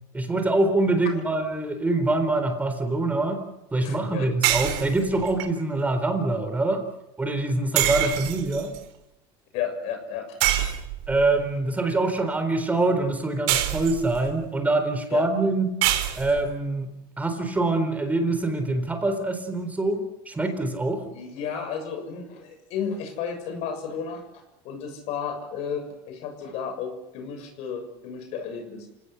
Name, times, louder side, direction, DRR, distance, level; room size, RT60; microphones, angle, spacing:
voice 1, 0.1-3.4 3.7-6.8 7.2-8.7 11.1-15.8 16.2-16.9 17.2-21.1, right 2 dB, 10° right, 7 dB, 4.0 m, -24 dB
voice 2, 3.8-4.2 9.5-10.7 15.1-15.2 21.0-28.9, left 7 dB, 60° left, 7 dB, 6.8 m, -33 dB
sound 1, 4.4-5.5 7.8-8.8 10.4-11.3 13.5-14.3 15.8-16.5, right 13 dB, 70° right, 3.8 m, -25 dB
28.0 x 17.5 x 8.3 m, 0.89 s
supercardioid pair, 115°, 12 cm